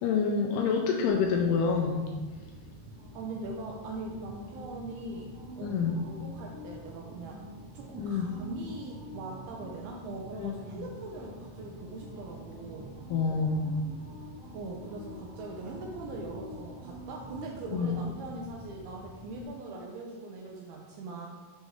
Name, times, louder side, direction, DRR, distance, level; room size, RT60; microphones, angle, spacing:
voice 1, 0.0-2.1 5.6-6.0 8.0-8.3 10.4-10.9 13.1-13.7 17.7-18.0, left 5 dB, 85° left, 1 dB, 2.3 m, -27 dB
sound 1, 1.1-19.4, equal, 40° right, 2.2 m, -46 dB
voice 2, 3.1-7.4 7.7-13.0 14.5-21.3, right 2 dB, 80° right, 0 dB, 2.2 m, -41 dB
7.2 x 5.3 x 3.6 m, 1.3 s
omnidirectional pair, 5.1 m